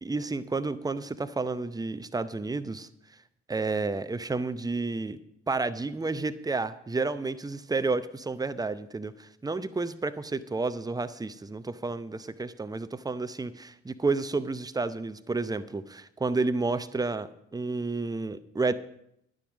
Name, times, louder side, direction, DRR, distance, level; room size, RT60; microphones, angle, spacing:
voice 1, 0.0-2.9 3.5-5.2 5.5-18.7, right 3 dB, 10° right, 14 dB, 0.7 m, -31 dB
11.5 x 10.0 x 5.1 m, 0.77 s
figure-of-eight pair, 40°, 35 cm